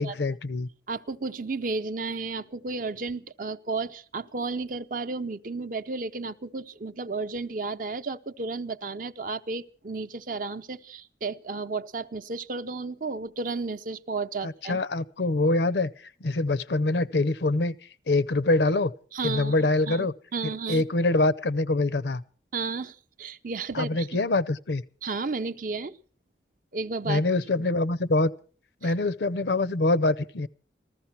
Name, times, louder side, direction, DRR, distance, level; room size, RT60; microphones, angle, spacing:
voice 1, 0.0-0.7 14.4-15.9 16.2-17.7 18.1-18.9 19.2-20.1 20.7-22.2 23.7-24.8 27.1-28.3 28.8-30.5, left 2 dB, 75° left, 0.7 m, -24 dB
voice 2, 0.9-14.8 19.1-20.1 20.3-20.8 22.5-24.1 25.0-26.0 26.7-27.2 28.8-28.9, right 3 dB, 50° right, 0.6 m, -33 dB
14.5 x 14.0 x 5.9 m
head